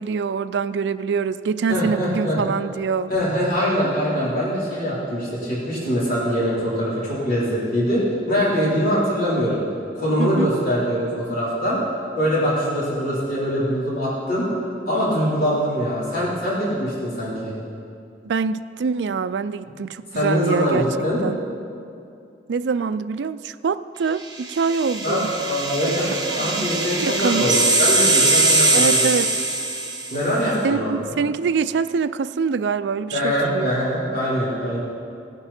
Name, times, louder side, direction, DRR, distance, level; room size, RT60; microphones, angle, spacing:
voice 1, 0.0-3.1 10.2-10.5 18.2-20.9 21.2-21.4 22.5-25.3 25.9-26.0 26.3-26.7 27.0-27.5 28.7-29.3 30.6-33.7, right 5 dB, 80° right, 13 dB, 0.4 m, -24 dB
voice 2, 1.7-2.4 3.1-9.6 9.9-11.8 12.2-14.5 14.9-17.6 20.1-21.2 25.0-29.0 30.1-31.2 33.1-34.8, equal, 55° left, -8 dB, 4.0 m, -23 dB
sound 1, 24.4-30.3, right 2 dB, 25° right, 1.5 m, -21 dB
17.0 x 11.5 x 4.3 m, 2.5 s
head